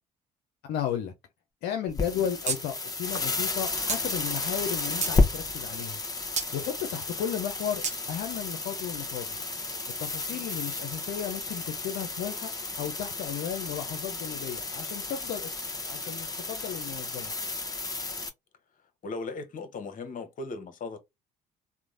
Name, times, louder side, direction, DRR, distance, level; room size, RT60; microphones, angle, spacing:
voice 1, 0.7-1.1 1.6-6.0 6.5-9.4 10.0-15.5 15.9-17.3, left 9 dB, 65° left, 0.5 m, -34 dB
sound 1, 1.9-18.3, left 3 dB, 20° left, 0.8 m, -32 dB
sound 2, 2.5-2.6 2.9-3.0 3.9-4.0 4.6-5.2 6.4-6.5 7.8-8.0, right 6 dB, 40° right, 0.9 m, -30 dB
voice 2, 19.0-21.0, left 3 dB, 45° left, 0.9 m, -38 dB
3.0 x 2.1 x 2.5 m
hypercardioid pair, 60°, 19 cm